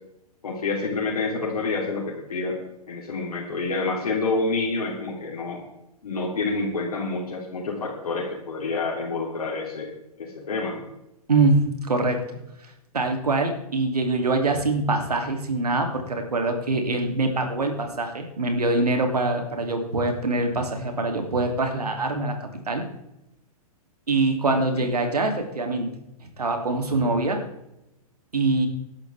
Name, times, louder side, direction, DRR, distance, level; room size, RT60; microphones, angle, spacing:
voice 1, 0.4-2.6 2.9-5.6 6.0-9.9 10.2-10.8 24.5-24.9, left 3 dB, 75° left, -3 dB, 3.4 m, -28 dB
voice 2, 11.3-12.2 12.9-22.4 22.7-22.8 24.1-25.9 26.4-27.4 28.3-28.7, right 2 dB, 85° right, 4 dB, 2.9 m, -24 dB
17.0 x 11.5 x 3.5 m, 0.88 s
hypercardioid pair, 120°, 19 cm